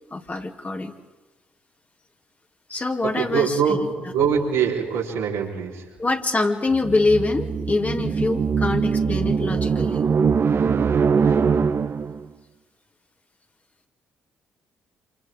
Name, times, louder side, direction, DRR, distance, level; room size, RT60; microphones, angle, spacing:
voice 1, 0.1-0.9 2.7-3.5 6.0-10.0, left 3 dB, 30° left, 3 dB, 2.8 m, -24 dB
voice 2, 3.0-5.9, right 7 dB, 80° right, -4 dB, 4.5 m, -23 dB
sound 1, 6.7-12.2, right 6 dB, 50° right, 1.1 m, -22 dB
28.0 x 27.5 x 3.8 m, 1.2 s
hypercardioid pair, 45°, 5 cm